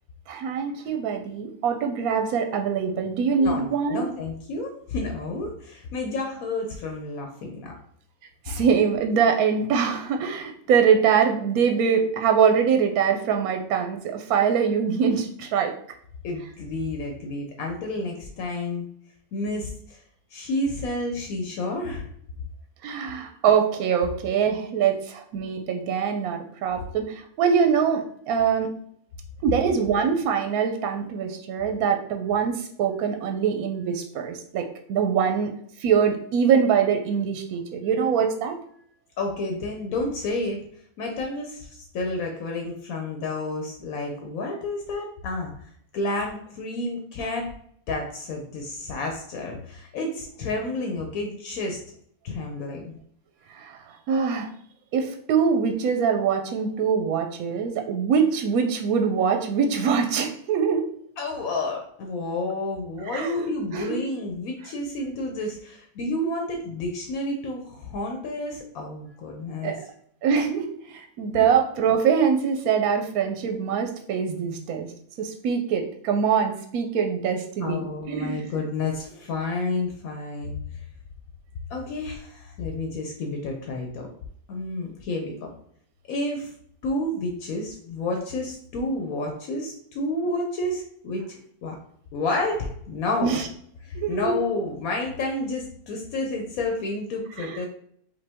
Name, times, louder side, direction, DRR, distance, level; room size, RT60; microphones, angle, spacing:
voice 1, 0.3-4.0 8.5-15.7 22.8-28.7 29.4-35.5 35.8-38.5 53.5-53.8 54.1-54.5 54.9-60.9 63.1-63.4 63.7-64.0 69.6-69.8 70.2-74.9 75.2-78.5 93.2-93.4 94.0-94.4 97.4-97.6, right 6 dB, 85° right, 4 dB, 1.1 m, -23 dB
voice 2, 3.4-7.7 16.2-18.9 19.3-20.0 20.3-22.1 39.2-40.6 41.0-47.5 47.9-51.8 52.2-52.9 61.2-69.7 71.4-71.5 77.6-80.8 81.7-84.1 84.5-85.5 86.1-86.5 86.8-91.2 91.6-91.8 92.1-93.3 93.8-97.7, left 2 dB, 75° left, 2 dB, 1.1 m, -30 dB
5.2 x 2.6 x 3.4 m, 0.65 s
omnidirectional pair, 1.5 m